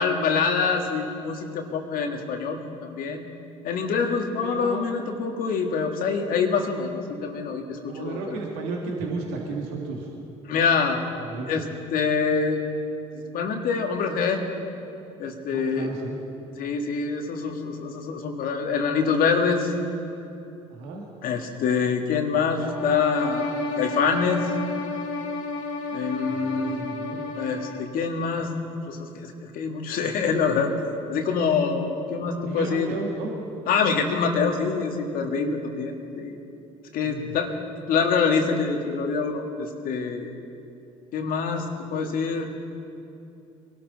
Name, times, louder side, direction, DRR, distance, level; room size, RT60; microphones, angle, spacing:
voice 1, 0.0-3.3 3.6-8.4 10.5-11.0 11.5-11.6 11.9-12.6 13.3-14.4 15.2-15.9 16.6-19.7 21.2-23.5 23.8-24.4 25.9-26.9 27.4-28.5 28.9-30.7 31.1-32.9 33.7-36.4 36.9-37.5 37.9-40.3 41.1-41.7 41.9-42.5, left 5 dB, 60° left, 3 dB, 1.9 m, -25 dB
voice 2, 4.4-4.9 7.8-10.1 10.7-10.8 11.2-11.6 15.4-16.2 20.7-21.1 26.3-27.2 32.4-33.3 37.0-37.3, right 3 dB, 80° right, -1 dB, 2.1 m, -34 dB
sound 1, 22.6-28.0, left 2 dB, 90° left, 1.3 m, -31 dB
23.0 x 13.0 x 4.1 m, 2.7 s
hypercardioid pair, 65°, 16 cm